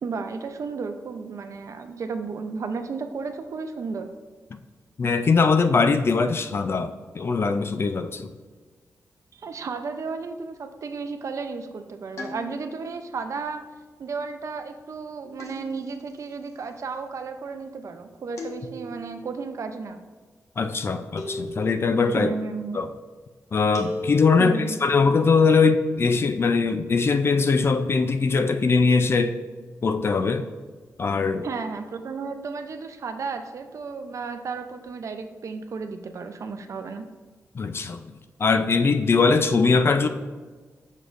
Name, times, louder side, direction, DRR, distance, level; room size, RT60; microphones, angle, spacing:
voice 1, 0.0-4.1 9.3-13.7 14.0-20.0 22.2-22.8 24.4-24.8 31.4-37.0, right 4 dB, 60° right, 7 dB, 0.5 m, -33 dB
voice 2, 5.0-8.3 20.6-22.3 22.7-22.9 23.5-24.6 24.8-29.4 29.8-30.5 31.0-31.5 37.5-38.0 38.4-40.1, left 4 dB, 45° left, 9 dB, 0.4 m, -21 dB
sound 1, 12.2-13.0 15.4-16.2 18.4-19.2 21.2-22.0 23.7-24.6, left 2 dB, 60° left, 1.0 m, -36 dB
7.0 x 6.4 x 2.5 m, 1.4 s
wide cardioid pair, 110°, 6 cm